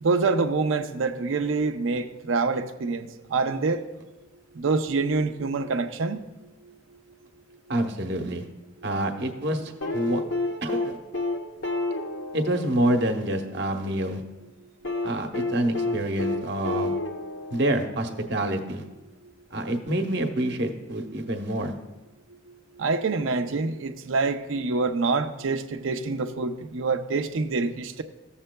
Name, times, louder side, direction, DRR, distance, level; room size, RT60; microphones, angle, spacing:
voice 1, 0.0-3.8 4.6-6.2 12.2-12.3 22.8-28.0, right 4 dB, 75° right, 7 dB, 0.5 m, -26 dB
voice 2, 7.7-8.4 8.8-10.2 10.6-11.0 12.3-14.2 15.0-17.0 17.5-18.8 19.5-21.7, right 1 dB, 55° right, 5 dB, 0.9 m, -27 dB
sound 1, 9.8-13.9 14.8-18.4 19.9-20.0, left 2 dB, 65° left, 1.0 m, -30 dB
15.5 x 7.2 x 2.2 m, 1.1 s
head